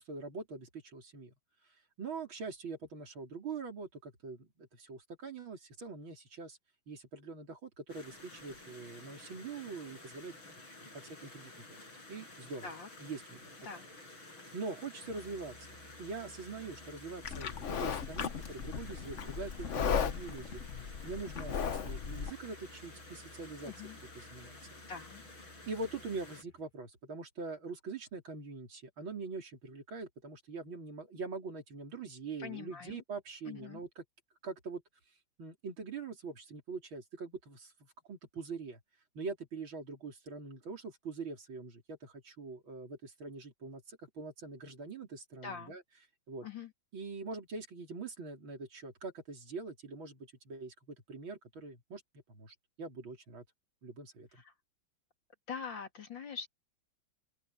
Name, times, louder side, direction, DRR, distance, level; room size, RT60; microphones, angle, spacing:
voice 1, 0.0-1.3 2.0-6.6 6.9-10.3 10.9-11.8 12.1-12.7 13.0-13.8 14.2-15.7 16.0-20.6 21.0-23.7 24.2-24.5 25.7-34.0 34.4-34.8 35.4-37.7 38.1-38.8 39.1-45.8 46.3-46.5 46.9-50.2 50.4-52.0 52.3-53.4 53.8-54.4, right 4 dB, 80° right, 4.3 m, -43 dB
Stream, 7.9-26.4, left 2 dB, 85° left, 8.9 m, -52 dB
Musical instrument, 15.0-26.7, left 1 dB, 25° left, 1.8 m, -58 dB
Livestock farm animals working animals, 17.2-22.3, left 7 dB, 50° left, 1.0 m, -36 dB
voice 2, 23.6-24.0 24.9-25.2 32.4-33.0 33.5-33.8 45.4-45.8 46.4-46.7 55.5-56.5, left 6 dB, 65° left, 3.4 m, -43 dB
open air
omnidirectional pair, 2.2 m